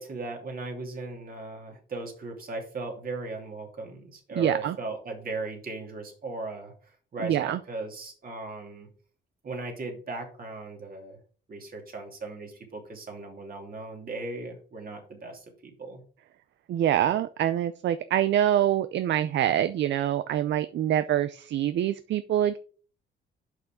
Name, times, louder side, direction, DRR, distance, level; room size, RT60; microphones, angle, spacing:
voice 1, 0.0-8.9 9.4-11.2 11.5-16.0, right 3 dB, 45° right, 2 dB, 2.9 m, -37 dB
voice 2, 4.4-4.8 7.2-7.6 16.7-22.6, right 11 dB, 65° right, 12 dB, 0.5 m, -25 dB
6.3 x 5.8 x 5.0 m, 0.41 s
cardioid pair, 90°, 20 cm